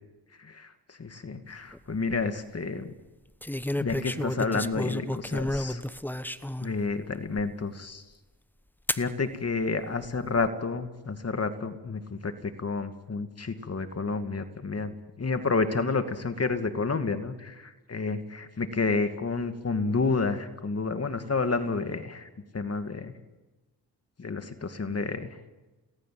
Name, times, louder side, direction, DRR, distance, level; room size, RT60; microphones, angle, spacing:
voice 1, 0.4-2.9 3.8-5.8 6.6-8.0 9.0-22.3 22.5-23.1 24.2-25.3, left 4 dB, 35° left, 9 dB, 2.4 m, -30 dB
sound 1, 1.7-2.2 3.4-6.7 7.4-7.5 8.9-9.1 10.0-10.5, left 1 dB, 5° left, 1.1 m, -32 dB
29.0 x 19.5 x 7.8 m, 1.1 s
cardioid pair, 70°, 42 cm